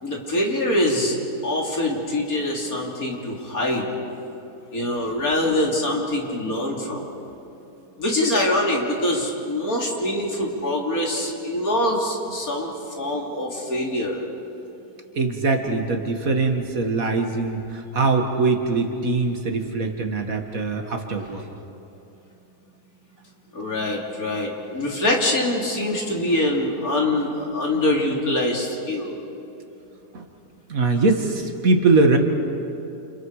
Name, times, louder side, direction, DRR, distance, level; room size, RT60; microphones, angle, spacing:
voice 1, 0.0-1.2 1.4-3.9 4.7-7.1 8.0-12.7 13.0-14.2 23.5-29.1, left 1 dB, 60° left, -1 dB, 3.6 m, -24 dB
voice 2, 15.2-21.5 30.1-30.2 30.7-32.2, right 3 dB, 55° right, 4 dB, 2.1 m, -22 dB
29.5 x 29.5 x 4.9 m, 2.9 s
omnidirectional pair, 1.7 m